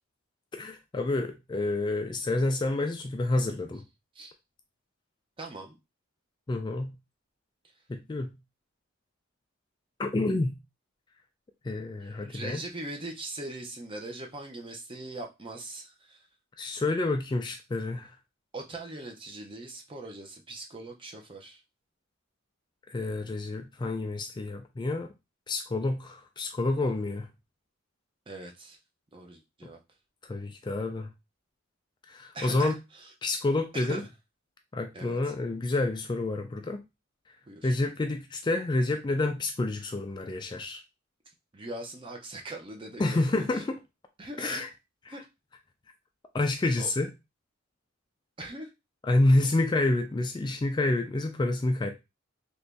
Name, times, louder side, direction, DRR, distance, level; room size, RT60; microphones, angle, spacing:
voice 1, 0.5-3.8 6.5-6.9 7.9-8.3 10.0-10.5 11.6-12.6 16.6-18.1 22.9-25.1 25.5-27.3 30.3-31.1 32.1-32.7 33.2-34.0 34.7-36.8 37.6-40.8 43.0-43.8 44.4-44.7 46.3-47.1 49.1-51.9, left 2 dB, 20° left, 0.3 m, -28 dB
voice 2, 5.4-5.8 12.0-16.2 18.5-21.6 28.3-28.8 29.1-29.8 32.3-33.1 33.7-34.1 34.9-35.3 37.5-37.7 41.5-43.6 44.2-44.6 45.1-45.2 46.8-46.9 48.4-48.7, right 2 dB, 25° right, 0.6 m, -41 dB
3.0 x 2.6 x 3.4 m
head